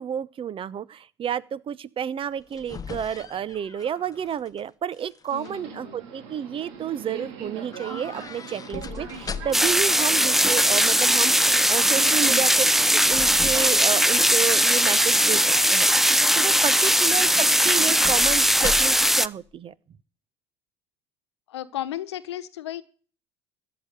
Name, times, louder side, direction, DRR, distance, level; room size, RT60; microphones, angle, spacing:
voice 1, 0.0-12.5 12.9-15.9 16.3-17.3 17.6-19.7, right 9 dB, 40° right, 0.9 m, -31 dB
sound 1, 2.2-4.6 4.9-5.5 7.7-9.8 12.6-14.7 15.1-15.6 17.1-19.2 19.4-19.5, left 6 dB, 25° left, 1.1 m, -39 dB
voice 2, 5.3-6.0 9.0-9.4 12.0-12.3 21.5-22.8, left 12 dB, 85° left, 1.2 m, -35 dB
Subway metro underground, 5.4-14.3, right 7 dB, 70° right, 4.0 m, -40 dB
sound 2, 9.5-19.3, equal, ahead, 0.6 m, -19 dB
13.5 x 6.9 x 9.3 m
hypercardioid pair, 70°, 14 cm